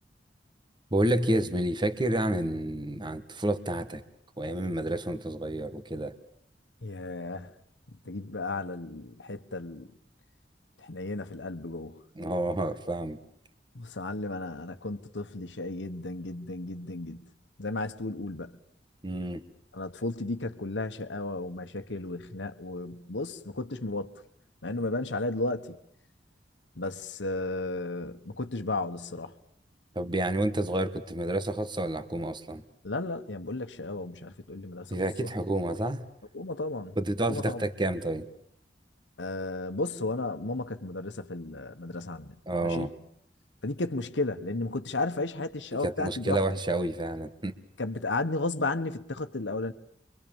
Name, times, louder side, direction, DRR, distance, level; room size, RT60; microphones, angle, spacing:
voice 1, 0.9-4.0 4.4-6.1 12.1-13.2 19.0-19.4 29.9-32.6 34.9-36.0 37.0-38.3 42.5-42.9 45.7-47.5, right 1 dB, 25° right, 1.5 m, -29 dB
voice 2, 6.8-7.5 8.1-9.9 10.8-12.0 13.7-17.2 17.6-18.5 19.7-24.1 24.6-25.8 26.8-29.3 32.8-35.0 36.3-37.0 37.3-37.6 39.2-42.4 42.6-42.9 43.6-46.4 47.8-49.7, left 2 dB, 90° left, 1.3 m, -34 dB
26.5 x 24.0 x 7.2 m
head